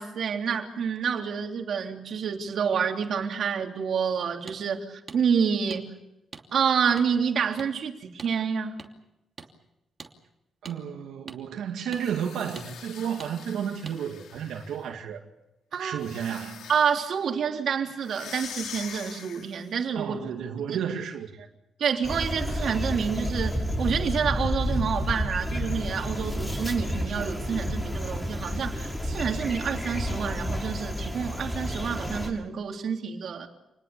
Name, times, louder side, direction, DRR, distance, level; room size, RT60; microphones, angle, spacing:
voice 1, 0.0-5.9 6.5-8.8 15.7-16.0 16.7-20.2 20.7-20.8 21.8-33.5, right 7 dB, 65° right, 3.2 m, -28 dB
sound 1, 4.5-4.6 5.1-5.2 5.7-5.8 6.3-6.5 7.0-7.1 7.6-7.7 8.2-8.3 8.8-8.9 9.4-9.5 10.0-10.1 10.7-10.8 11.3-11.4 11.9-12.0 12.6-12.7 13.2-13.3 13.9-14.0, right 4 dB, 30° right, 2.8 m, -43 dB
voice 2, 10.6-15.2 15.8-16.7 19.9-21.5, right 8 dB, 90° right, 2.3 m, -32 dB
sound 2, 11.9-14.9 16.0-17.1 18.0-19.7, left 7 dB, 85° left, 4.0 m, -43 dB
sound 3, 22.0-32.3, equal, 15° left, 6.6 m, -30 dB
28.5 x 20.5 x 7.0 m
cardioid pair, 110°, 0 cm